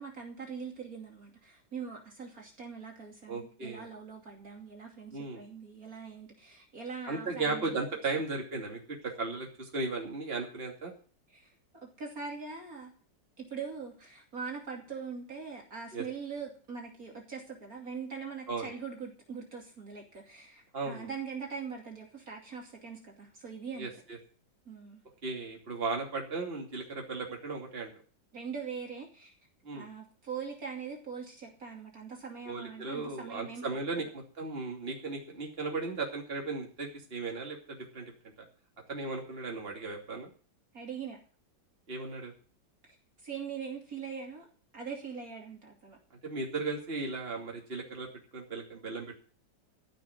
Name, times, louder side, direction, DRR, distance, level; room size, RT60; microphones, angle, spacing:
voice 1, 0.0-7.8 11.3-12.9 13.4-23.9 24.7-25.0 28.3-29.3 29.7-33.6 40.7-41.2 42.8-44.5 44.7-46.0, right 6 dB, 50° right, 0 dB, 3.1 m, -42 dB
voice 2, 3.3-3.9 5.1-5.4 7.1-10.9 15.9-16.0 18.5-18.7 20.7-21.1 23.8-24.2 25.2-27.9 29.6-29.9 32.5-38.1 38.9-40.3 41.9-42.3 46.2-48.1 48.3-49.1, right 3 dB, 30° right, 1 dB, 3.0 m, -36 dB
15.0 x 6.4 x 9.3 m, 0.39 s
omnidirectional pair, 2.1 m